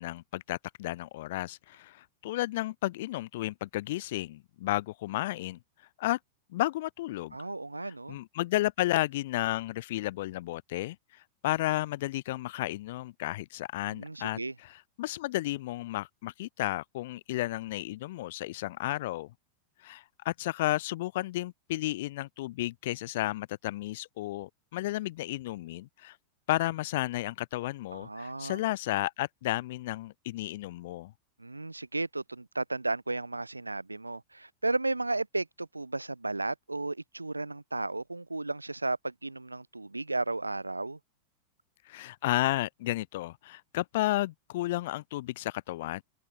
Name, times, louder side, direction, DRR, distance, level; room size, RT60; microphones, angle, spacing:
voice 1, 0.0-5.6 6.0-6.2 6.5-7.4 8.1-19.3 19.8-26.2 26.5-31.1 41.9-46.0, left 17 dB, 55° left, 5.7 m, -32 dB
voice 2, 7.3-8.2 13.9-14.5 27.9-28.6 31.4-41.0, right 2 dB, 85° right, 5.5 m, -34 dB
figure-of-eight pair, 90°, 0 cm